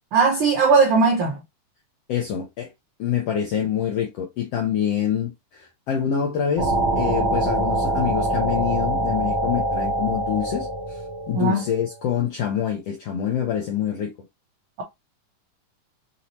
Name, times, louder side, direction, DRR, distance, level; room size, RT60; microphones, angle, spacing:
voice 1, 0.1-1.4 11.3-11.6, right 4 dB, 75° right, 1.2 m, -18 dB
voice 2, 2.1-2.7 3.0-11.0 11.3-14.1, left 9 dB, 75° left, 1.4 m, -26 dB
sound 1, 6.6-12.0, right 1 dB, 55° right, 1.5 m, -24 dB
5.6 x 2.8 x 3.0 m
omnidirectional pair, 3.9 m